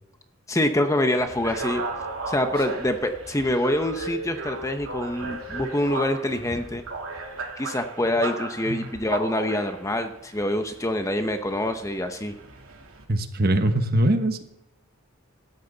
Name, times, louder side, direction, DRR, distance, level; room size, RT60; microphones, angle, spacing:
voice 1, 0.5-1.8 2.3-6.8 7.6-12.3, left 1 dB, 15° left, 7 dB, 0.8 m, -25 dB
sound 1, 1.2-13.0, right 3 dB, 70° right, 3.1 m, -36 dB
voice 2, 13.1-14.4, right 1 dB, 45° right, 7 dB, 1.2 m, -22 dB
17.0 x 13.0 x 4.0 m, 0.85 s
head